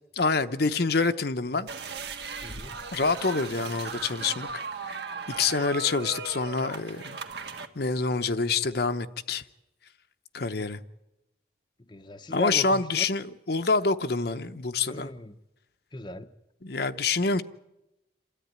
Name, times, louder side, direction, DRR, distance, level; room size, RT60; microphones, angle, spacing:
voice 1, 0.2-1.7 2.9-4.6 5.4-7.2 7.8-9.4 10.3-10.8 12.3-15.1 16.6-17.4, left 4 dB, 55° left, 0.8 m, -26 dB
sound 1, 1.7-7.7, right 4 dB, 65° right, 1.5 m, -37 dB
voice 2, 2.4-2.7 11.9-13.0 14.9-15.3 15.9-16.3, left 1 dB, 25° left, 0.7 m, -37 dB
28.0 x 13.5 x 9.5 m
head